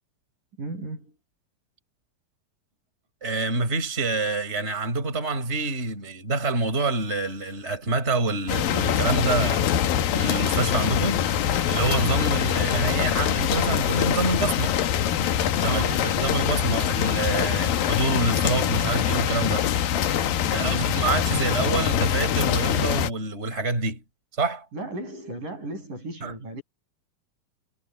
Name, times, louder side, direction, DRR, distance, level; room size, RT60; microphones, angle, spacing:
voice 1, 0.6-1.1 15.6-16.2 20.5-21.0 24.7-26.6, right 2 dB, 65° right, 8.9 m, -35 dB
voice 2, 3.2-9.7 10.1-11.2 11.7-14.7 15.6-19.7 20.5-24.0 24.4-24.7 26.2-26.3, right 3 dB, 15° right, 5.6 m, -27 dB
sound 1, 8.5-23.1, left 9 dB, 85° left, 3.1 m, -24 dB
omnidirectional pair, 4.0 m